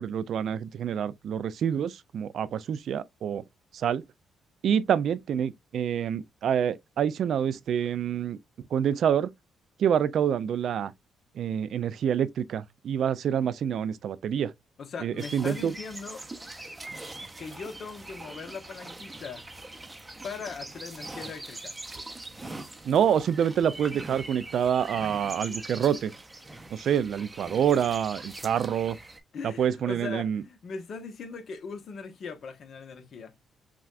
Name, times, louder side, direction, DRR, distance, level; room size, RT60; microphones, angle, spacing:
voice 1, 0.0-3.4 3.7-4.0 4.6-8.4 8.7-9.3 9.8-10.9 11.4-14.5 15.0-15.7 22.8-26.1 26.7-29.0 29.6-30.4, right 8 dB, 65° right, 0.3 m, -27 dB
voice 2, 14.8-16.2 17.4-19.4 20.2-21.8 29.3-33.3, left 5 dB, 55° left, 0.9 m, -39 dB
sound 1, 15.2-29.2, right 2 dB, 15° right, 0.6 m, -42 dB
5.8 x 2.3 x 2.4 m
cardioid pair, 90°, 0 cm